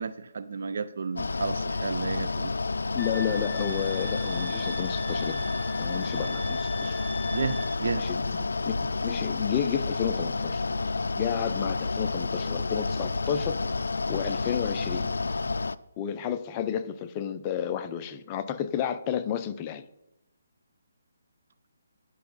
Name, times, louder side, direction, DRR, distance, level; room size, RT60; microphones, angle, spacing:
voice 1, 0.0-2.5 7.3-8.0, right 5 dB, 60° right, 12 dB, 0.5 m, -32 dB
Mechanical fan, 1.2-15.8, left 3 dB, 85° left, 0.3 m, -30 dB
voice 2, 2.9-5.5 5.8-7.0 7.8-10.6 11.2-13.6 14.1-15.1 16.0-19.9, left 9 dB, 20° left, 9 dB, 0.5 m, -31 dB
Wind instrument woodwind instrument, 3.0-7.8, equal, 10° right, 3.1 m, -41 dB
12.0 x 5.7 x 4.0 m, 0.88 s
hypercardioid pair, 160°, 0 cm